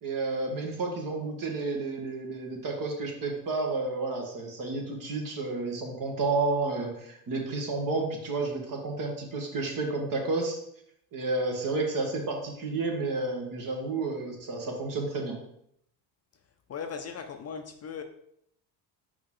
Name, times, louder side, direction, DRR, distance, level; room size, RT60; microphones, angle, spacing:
voice 1, 0.0-10.6 11.1-15.4, right 3 dB, 45° right, 2 dB, 1.7 m, -31 dB
voice 2, 16.7-18.0, left 6 dB, 35° left, 6 dB, 0.6 m, -38 dB
5.4 x 4.8 x 3.8 m, 0.73 s
supercardioid pair, 90°, 44 cm